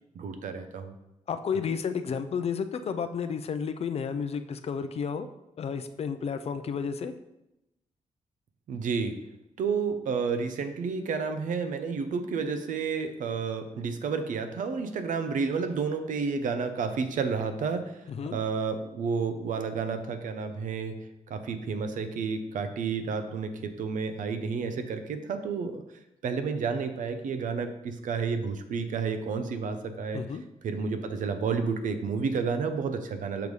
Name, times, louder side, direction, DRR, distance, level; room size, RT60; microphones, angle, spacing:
voice 1, 0.2-0.9 8.7-9.1 9.6-18.0 18.3-21.0 21.3-25.8 26.2-30.2 30.6-33.5, right 5 dB, 80° right, 8 dB, 0.7 m, -31 dB
voice 2, 1.3-5.3 5.6-7.1 18.1-18.4 30.1-30.4, left 6 dB, 50° left, 9 dB, 0.5 m, -32 dB
6.9 x 3.2 x 5.3 m, 0.91 s
cardioid pair, 120°, 13 cm